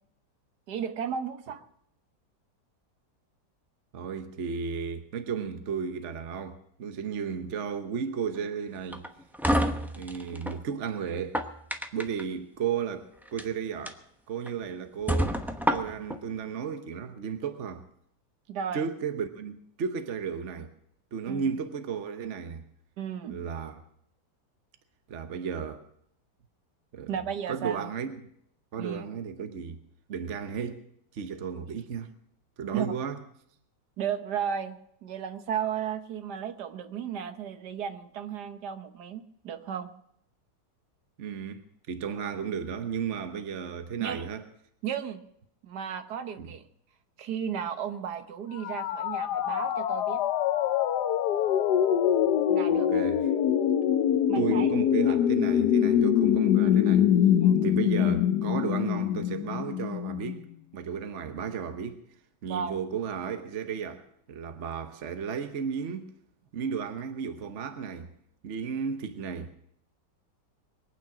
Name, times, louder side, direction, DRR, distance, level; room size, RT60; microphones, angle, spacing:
voice 1, 0.7-1.6 18.5-18.8 21.3-21.5 23.0-23.4 27.1-27.9 28.8-29.1 32.7-32.9 34.0-34.7 35.0-39.9 44.0-44.3 44.8-45.2 45.6-46.6 47.2-50.2 52.5-52.9 54.3-54.7 57.4-57.6 62.5-62.7, right 8 dB, 70° right, 1.6 m, -34 dB
voice 2, 3.9-9.1 10.0-11.4 11.9-14.0 14.3-17.8 18.7-20.7 21.1-22.6 23.3-23.8 25.1-25.8 26.9-27.2 27.5-28.2 28.7-29.8 30.1-30.8 31.1-32.1 32.6-33.2 41.2-44.5 46.4-46.5 52.7-53.3 54.3-57.1 57.6-60.4 60.7-62.0 62.4-66.1 66.5-68.1 68.4-69.6, right 6 dB, 50° right, 1.1 m, -34 dB
sound 1, 8.9-10.6 11.1-12.2 13.2-13.4 13.9-14.0 14.5-14.6 15.1-16.2, equal, ahead, 0.7 m, -28 dB
sound 2, 48.6-60.4, left 10 dB, 70° left, 1.3 m, -24 dB
23.0 x 9.1 x 5.9 m
omnidirectional pair, 1.9 m